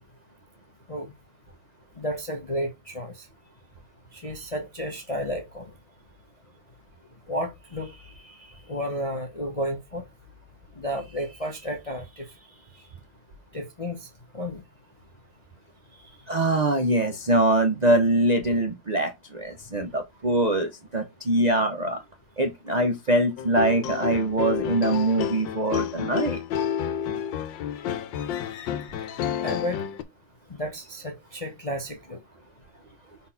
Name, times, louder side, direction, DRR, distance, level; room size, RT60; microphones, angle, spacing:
voice 1, 2.0-3.3 4.1-5.7 7.3-10.0 10.8-12.3 13.5-14.1 14.3-14.6 28.4-28.6 29.4-29.8 30.5-32.2, equal, 40° left, 0.5 m, -32 dB
voice 2, 16.3-22.0 22.4-26.4, right 1 dB, 65° right, 0.4 m, -23 dB
sound 1, 23.4-30.0, left 9 dB, 90° left, 1.4 m, -30 dB
4.1 x 4.1 x 5.6 m
omnidirectional pair, 2.0 m